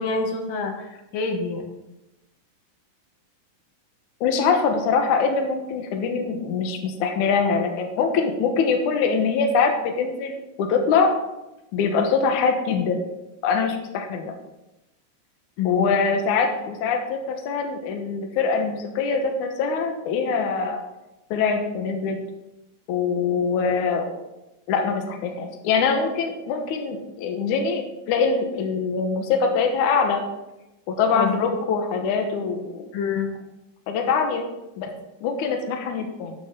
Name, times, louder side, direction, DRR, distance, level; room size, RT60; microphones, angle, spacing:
voice 1, 0.0-1.7 15.6-15.9 31.2-31.4 32.9-33.3, left 5 dB, 90° left, 3 dB, 3.0 m, -27 dB
voice 2, 4.2-11.1 11.7-13.0 13.4-14.3 15.7-20.8 21.3-22.2 22.9-24.1 24.7-30.2 30.9-32.9 33.9-34.4 34.8-34.9 35.2-36.3, left 5 dB, 70° left, 4 dB, 2.5 m, -23 dB
12.0 x 9.1 x 3.7 m, 0.96 s
omnidirectional pair, 3.9 m